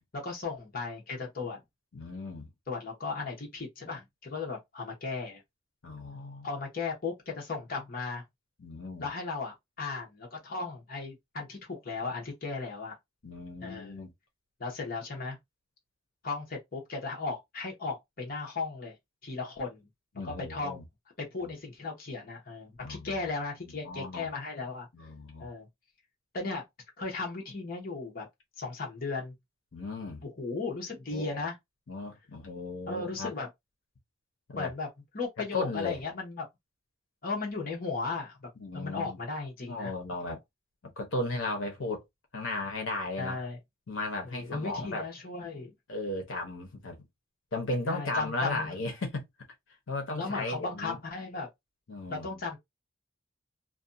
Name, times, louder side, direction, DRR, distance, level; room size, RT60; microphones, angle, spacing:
voice 1, 0.0-1.6 2.7-5.4 6.4-8.2 9.0-12.9 13.6-14.1 14.6-15.4 16.2-18.9 19.2-19.9 20.2-20.8 21.2-24.9 25.4-25.7 26.3-26.6 27.0-28.3 28.6-29.3 30.2-31.6 32.9-33.5 34.5-34.9 35.1-36.5 37.2-39.9 43.2-43.6 44.3-45.7 47.9-48.7 50.1-51.5 52.1-52.6, left 4 dB, 45° left, 0.9 m, -36 dB
voice 2, 1.9-2.5 5.8-6.5 8.6-9.1 13.2-14.1 20.2-20.8 21.4-21.5 22.8-23.2 23.8-24.3 24.9-25.5 29.7-30.2 31.1-31.4 31.9-33.3 34.5-34.7 35.5-36.0 38.6-39.2 39.7-40.4 40.8-42.0 42.3-43.4 43.9-45.1 45.9-47.0 47.5-49.2 49.9-51.0 51.9-52.4, left 2 dB, 75° left, 0.8 m, -35 dB
2.5 x 2.2 x 2.5 m
head